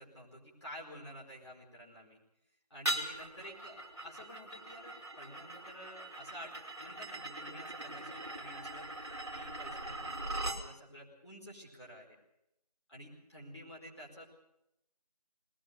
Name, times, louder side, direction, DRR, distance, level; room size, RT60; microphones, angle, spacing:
voice 1, 0.0-2.2 2.7-12.1 12.9-14.2, equal, 40° left, -4 dB, 4.7 m, -51 dB
sound 1, 2.8-10.6, right 1 dB, 40° right, 2.8 m, -41 dB
21.0 x 20.0 x 6.7 m, 0.85 s
figure-of-eight pair, 175°, 21 cm